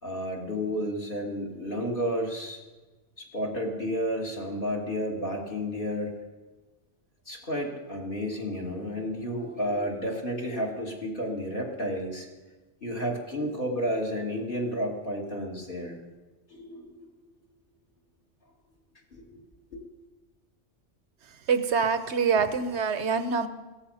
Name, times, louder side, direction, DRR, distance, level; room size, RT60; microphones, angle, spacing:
voice 1, 0.0-2.6 3.2-6.1 7.3-12.3 12.8-16.0 16.5-17.1 19.1-19.4 19.7-19.8, equal, 45° left, 0 dB, 2.7 m, -31 dB
voice 2, 21.5-23.5, right 5 dB, 65° right, 10 dB, 1.3 m, -25 dB
17.0 x 14.0 x 5.7 m, 1.2 s
omnidirectional pair, 1.3 m